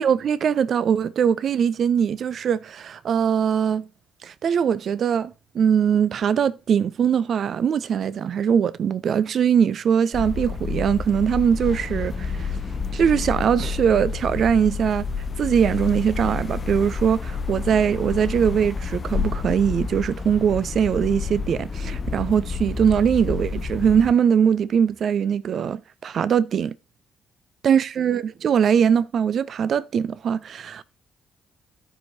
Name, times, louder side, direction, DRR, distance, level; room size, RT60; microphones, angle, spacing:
voice 1, 0.0-3.8 4.2-12.6 12.9-26.8 27.6-30.8, right 7 dB, 60° right, 0.3 m, -21 dB
sound 1, 10.1-24.1, left 5 dB, 40° left, 0.5 m, -29 dB
13.5 x 4.7 x 2.7 m
supercardioid pair, 55°, 0 cm